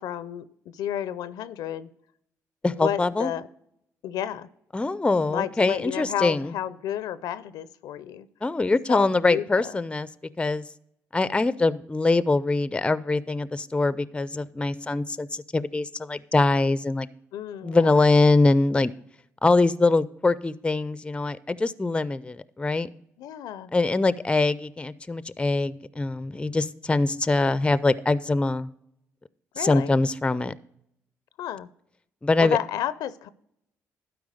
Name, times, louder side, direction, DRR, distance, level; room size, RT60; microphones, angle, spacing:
voice 1, 0.0-1.9 2.7-3.5 4.0-4.5 5.3-8.3 8.9-9.8 17.3-18.0 23.2-23.7 29.5-30.0 31.4-31.7 32.4-33.3, left 10 dB, 75° left, 15 dB, 0.5 m, -31 dB
voice 2, 2.6-3.3 4.7-6.5 8.4-10.1 10.4-10.6 11.1-17.1 17.6-18.9 19.4-22.9 23.7-28.7 29.6-30.5 32.2-32.6, left 3 dB, 15° left, 17 dB, 0.4 m, -23 dB
12.0 x 4.7 x 5.0 m, 0.73 s
supercardioid pair, 65°, 7 cm